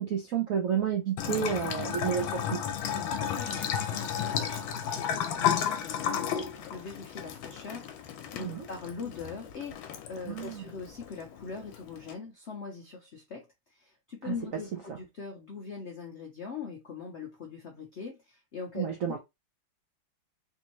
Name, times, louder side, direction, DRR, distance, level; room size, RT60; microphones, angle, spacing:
voice 1, 0.0-2.6 8.4-8.7 10.3-10.6 14.2-14.4 14.9-15.0 18.7-19.2, right 8 dB, 75° right, 0.7 m, -30 dB
Bathtub (filling or washing) / Trickle dribble, 1.2-12.1, left 8 dB, 85° left, 1.4 m, -33 dB
voice 2, 2.9-19.2, left 5 dB, 70° left, 0.6 m, -42 dB
3.5 x 2.7 x 3.0 m
omnidirectional pair, 2.2 m